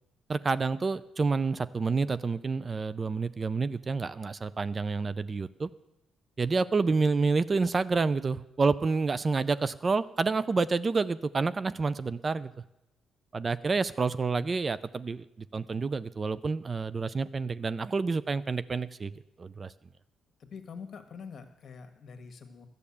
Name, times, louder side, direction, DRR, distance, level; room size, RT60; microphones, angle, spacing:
voice 1, 0.3-5.7 6.4-12.5 13.3-19.1 19.4-19.7, right 4 dB, 35° right, 16 dB, 0.4 m, -29 dB
voice 2, 14.2-14.5 20.4-22.7, left 5 dB, 55° left, 7 dB, 1.5 m, -45 dB
12.0 x 6.7 x 8.5 m, 0.88 s
cardioid pair, 90°, 0 cm